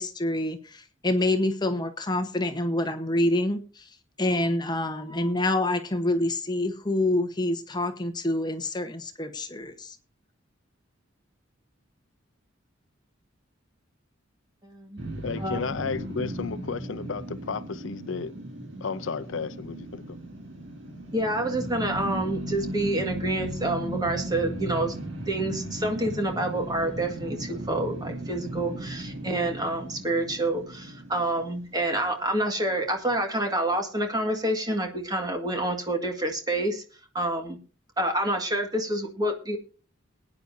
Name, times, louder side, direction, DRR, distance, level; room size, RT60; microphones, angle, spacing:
voice 1, 0.0-3.9 4.2-10.0, left 1 dB, 20° left, 1.1 m, -27 dB
voice 2, 14.6-15.0 15.4-15.6 21.1-25.0 25.3-36.8 37.1-37.6 38.0-39.6, right 1 dB, 20° right, 1.9 m, -28 dB
sound 1, 15.0-32.2, right 1 dB, 65° right, 2.4 m, -36 dB
voice 3, 15.2-18.3 18.8-20.2, left 5 dB, 70° left, 0.6 m, -33 dB
21.5 x 9.6 x 2.7 m
head